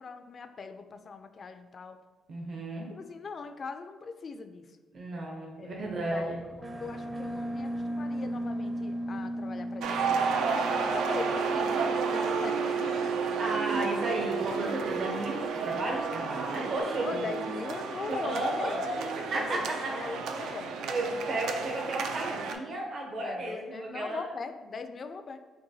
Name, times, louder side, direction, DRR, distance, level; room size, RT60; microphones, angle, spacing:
voice 1, 0.0-2.0 2.9-4.7 5.6-10.2 10.7-13.5 16.9-18.8 19.3-21.1 23.1-25.4, left 4 dB, 45° left, 8 dB, 0.3 m, -41 dB
voice 2, 2.3-2.9 4.9-6.4 13.4-17.2 18.3-18.9 19.2-20.1 20.8-24.3, right 2 dB, 60° right, -1 dB, 0.7 m, -33 dB
sound 1, 5.8-16.8, right 4 dB, 25° right, 0.5 m, -35 dB
sound 2, 9.8-22.5, right 5 dB, 85° right, 0.3 m, -33 dB
5.7 x 2.2 x 2.7 m, 1.3 s
cardioid pair, 90°, 0 cm